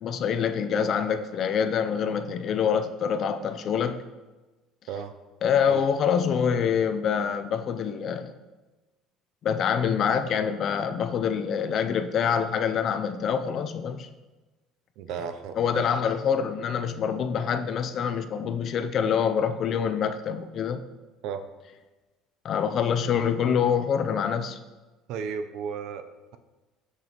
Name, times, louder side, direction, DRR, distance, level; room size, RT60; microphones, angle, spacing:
voice 1, 0.0-4.0 5.4-8.3 9.4-14.1 15.6-20.8 22.4-24.6, left 7 dB, 40° left, 9 dB, 0.4 m, -26 dB
voice 2, 15.0-15.8 21.2-21.4 25.1-26.4, right 7 dB, 60° right, 10 dB, 0.5 m, -34 dB
6.8 x 6.4 x 2.9 m, 1.2 s
cardioid pair, 165°, 0 cm